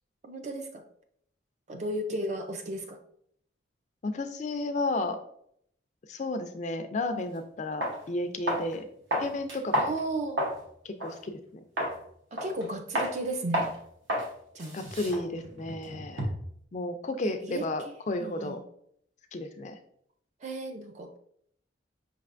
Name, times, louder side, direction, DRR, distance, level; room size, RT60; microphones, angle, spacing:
voice 1, 0.2-0.8 1.7-3.0 9.8-10.4 12.3-13.7 14.5-14.8 17.2-17.7 18.2-18.6 20.4-21.2, right 1 dB, 35° right, 6 dB, 0.4 m, -34 dB
voice 2, 4.0-5.2 6.1-8.8 9.2-9.9 10.8-11.6 14.7-16.3 16.7-18.6 19.3-19.8, left 2 dB, 40° left, 7 dB, 0.3 m, -33 dB
sound 1, 7.2-7.3 7.8-8.0 8.5-8.7 9.1-10.6 11.0-11.2 11.8-12.0 12.4-12.7 13.0-13.1 13.5-13.8 14.1-14.3 14.6-16.5, equal, 75° right, 1.0 m, -30 dB
5.2 x 3.3 x 2.5 m, 0.69 s
head